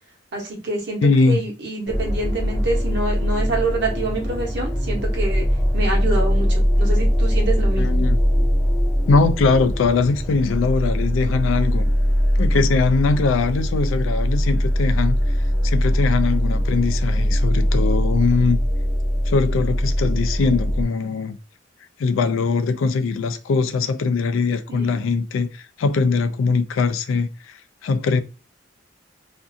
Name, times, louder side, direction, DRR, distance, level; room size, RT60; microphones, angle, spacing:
voice 1, 0.3-5.4 5.7-8.0 24.7-25.1, right 2 dB, 60° right, 1.0 m, -26 dB
voice 2, 1.0-1.4 7.8-8.2 9.1-11.9 12.4-15.2 15.6-18.6 19.3-21.4 22.0-28.2, left 4 dB, 80° left, 0.3 m, -21 dB
sound 1, 1.9-20.8, equal, 10° left, 0.5 m, -21 dB
2.6 x 2.4 x 2.6 m
head